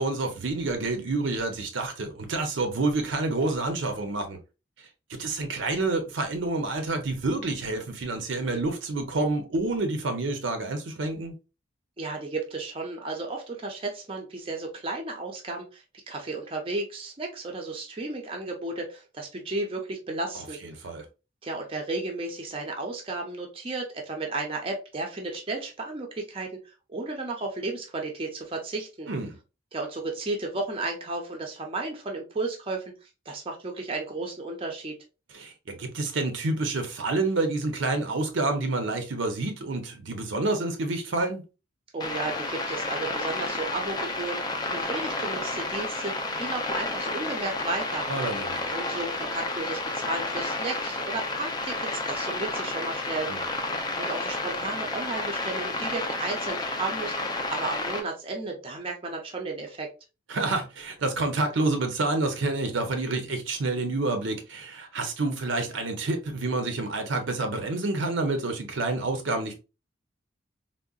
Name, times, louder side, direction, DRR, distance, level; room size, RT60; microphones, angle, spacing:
voice 1, 0.0-4.4 5.1-11.3 20.8-21.0 29.1-29.3 35.3-41.4 48.1-48.7 53.3-53.4 60.3-69.6, right 2 dB, 70° right, 0.6 m, -28 dB
voice 2, 12.0-20.6 21.4-29.1 29.7-35.0 41.9-48.1 48.7-53.3 54.0-59.9, right 3 dB, 30° right, 0.5 m, -34 dB
sound 1, 42.0-58.0, left 2 dB, 20° left, 0.4 m, -31 dB
3.7 x 2.1 x 2.3 m
head